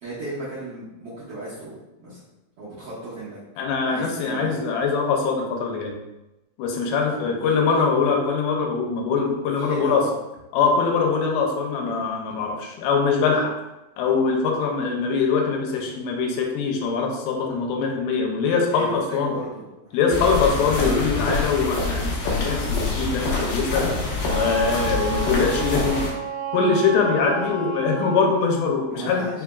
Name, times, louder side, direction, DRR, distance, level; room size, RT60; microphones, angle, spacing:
voice 1, 0.0-2.2 2.6-3.4 3.8-4.6 7.1-7.4 7.8-8.1 9.6-10.0 18.7-20.7 28.9-29.4, right 1 dB, 75° right, -12 dB, 1.4 m, -36 dB
voice 2, 3.6-6.0 6.6-10.1 10.5-13.6 14.0-19.4 19.9-24.0 24.3-26.1 26.5-29.4, left 5 dB, 85° left, 1 dB, 2.8 m, -23 dB
sound 1, 20.1-26.1, left 3 dB, 65° left, 2.2 m, -26 dB
Wind instrument woodwind instrument, 24.3-28.6, right 6 dB, 90° right, 2.7 m, -31 dB
5.9 x 3.5 x 2.3 m, 0.98 s
omnidirectional pair, 4.8 m